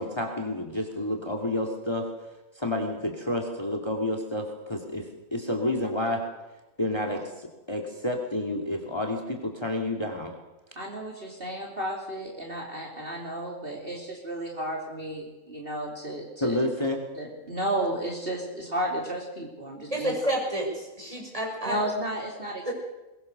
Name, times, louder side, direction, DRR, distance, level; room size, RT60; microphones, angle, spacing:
voice 1, 0.0-2.1 2.6-6.2 6.8-10.3 16.4-17.0, left 1 dB, 20° left, 2 dB, 2.5 m, -29 dB
voice 2, 10.7-16.6 17.1-20.1 21.6-22.7, right 1 dB, 45° right, -1 dB, 3.4 m, -33 dB
voice 3, 19.9-21.8 22.6-22.7, right 1 dB, 25° right, -1 dB, 6.7 m, -29 dB
22.0 x 22.0 x 6.7 m, 1.0 s
omnidirectional pair, 1.4 m